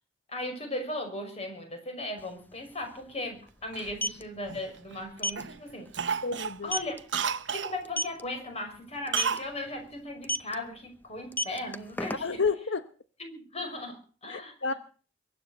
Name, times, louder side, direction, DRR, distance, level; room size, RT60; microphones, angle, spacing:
voice 1, 0.3-5.9 6.6-7.0 7.5-12.4 13.2-14.5, left 1 dB, 35° left, 5 dB, 5.8 m, -37 dB
sound 1, 2.2-2.3 2.5-2.7 3.7-4.2 5.2-5.4 5.9-6.0 6.4-6.5 6.7-7.0 7.8-8.2 9.1-9.4 10.2-10.5 11.2-12.5, left 1 dB, 10° left, 0.7 m, -30 dB
Cough, 3.7-5.0 5.4-5.6 5.9-7.8 9.1-9.5 9.8-9.9, right 7 dB, 80° right, 1.0 m, -32 dB
voice 2, 6.2-6.7 12.1-12.9 14.3-14.7, left 4 dB, 90° left, 11 dB, 1.0 m, -30 dB
23.0 x 9.7 x 6.5 m, 0.41 s
head